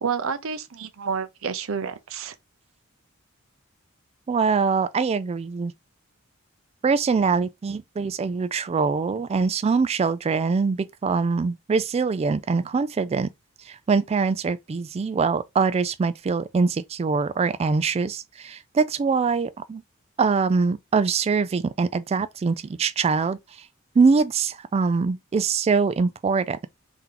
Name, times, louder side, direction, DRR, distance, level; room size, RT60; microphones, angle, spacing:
voice 1, 0.0-2.3, right 6 dB, 70° right, 0.6 m, -29 dB
voice 2, 4.3-5.7 6.8-13.3 13.7-19.8 20.2-23.4 24.0-26.7, right 4 dB, 30° right, 0.3 m, -23 dB
3.6 x 2.8 x 3.7 m
head